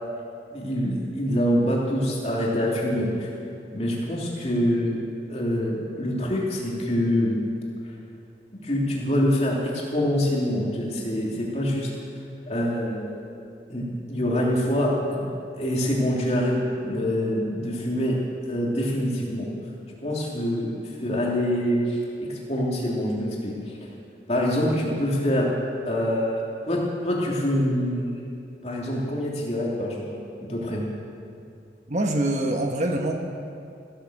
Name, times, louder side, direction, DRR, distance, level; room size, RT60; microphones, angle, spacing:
voice 1, 0.5-3.3 3.7-5.0 5.3-7.4 8.6-11.9 12.5-13.2 13.7-15.3 15.6-18.2 18.5-19.5 20.0-20.7 21.0-23.9 24.3-25.5 25.8-26.4 26.7-28.2 28.6-30.0 30.4-30.9, equal, 35° left, -3 dB, 3.0 m, -25 dB
voice 2, 31.9-33.2, right 1 dB, 40° right, 3 dB, 1.0 m, -24 dB
15.5 x 11.5 x 7.6 m, 2.5 s
head